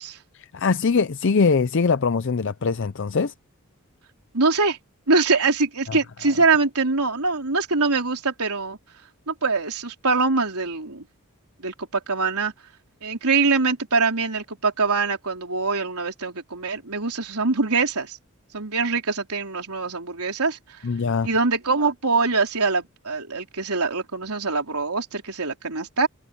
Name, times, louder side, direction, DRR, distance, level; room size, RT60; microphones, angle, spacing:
voice 1, 0.3-3.3 5.9-6.0 20.8-21.3, left 4 dB, 55° left, 0.5 m, -22 dB
voice 2, 4.3-4.8 5.1-8.8 9.3-11.1 11.6-12.5 13.0-18.2 18.5-20.6 21.2-26.1, right 4 dB, 85° right, 3.8 m, -23 dB
open air
head